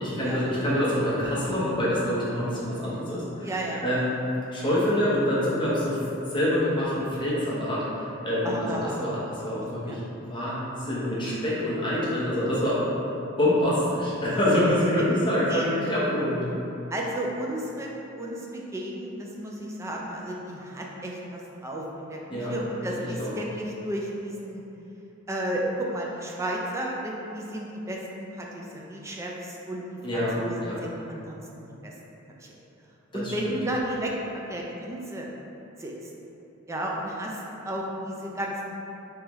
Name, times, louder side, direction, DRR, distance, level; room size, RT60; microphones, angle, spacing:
voice 1, 0.0-3.5 3.8-4.1 4.5-6.0 6.3-8.5 9.0-10.0 10.3-12.8 13.4-16.5 22.3-22.5 22.9-23.3 30.0-30.3 30.6-30.7 33.1-33.3, left 1 dB, 25° left, -8 dB, 0.8 m, -26 dB
voice 2, 3.4-3.9 8.4-10.0 15.3-15.7 16.9-17.9 18.2-24.6 25.3-31.9 32.4-32.6 33.1-35.3 35.8-36.1 36.7-38.7, right 1 dB, 15° right, -2 dB, 0.3 m, -33 dB
3.4 x 3.2 x 3.0 m, 3.0 s
head